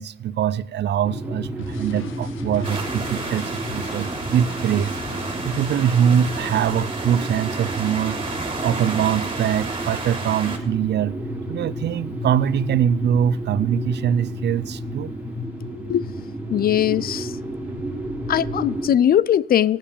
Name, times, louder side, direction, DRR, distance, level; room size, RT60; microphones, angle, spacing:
voice 1, 0.0-4.9 5.4-8.2 8.6-11.2 11.5-15.1, right 9 dB, 60° right, 0.6 m, -23 dB
sound 1, 1.0-18.9, right 1 dB, 10° right, 3.9 m, -32 dB
sound 2, 1.6-6.7, left 6 dB, 80° left, 1.6 m, -39 dB
sound 3, 2.6-10.6, right 3 dB, 25° right, 3.4 m, -31 dB
voice 2, 16.5-17.3 18.3-19.8, left 10 dB, 50° left, 0.5 m, -20 dB
15.5 x 9.2 x 7.2 m
cardioid pair, 90°, 20 cm